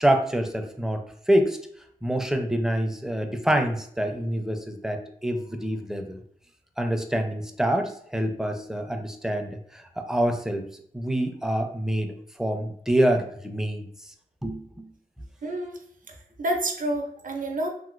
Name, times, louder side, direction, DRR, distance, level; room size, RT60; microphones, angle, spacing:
voice 1, 0.0-1.6 2.0-6.2 6.8-10.7 10.9-12.1 12.4-13.9 14.4-14.9, right 1 dB, 5° right, 5 dB, 0.5 m, -26 dB
voice 2, 15.4-15.8 16.1-17.7, right 1 dB, 60° right, 2 dB, 0.6 m, -29 dB
2.9 x 2.8 x 2.5 m, 0.66 s
cardioid pair, 50°, 15 cm